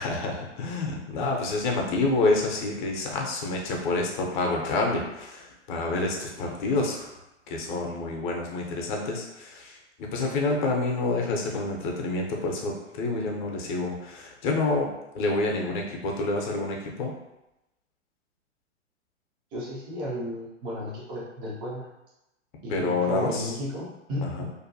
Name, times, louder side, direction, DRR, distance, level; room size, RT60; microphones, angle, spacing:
voice 1, 0.0-7.1 7.5-9.8 10.1-14.9 15.1-17.1 22.7-23.5 24.4-24.5, left 2 dB, 40° left, 0 dB, 0.6 m, -28 dB
voice 2, 19.5-21.9 22.6-24.5, equal, 15° right, -5 dB, 0.3 m, -34 dB
2.6 x 2.2 x 2.6 m, 0.93 s
hypercardioid pair, 120°, 38 cm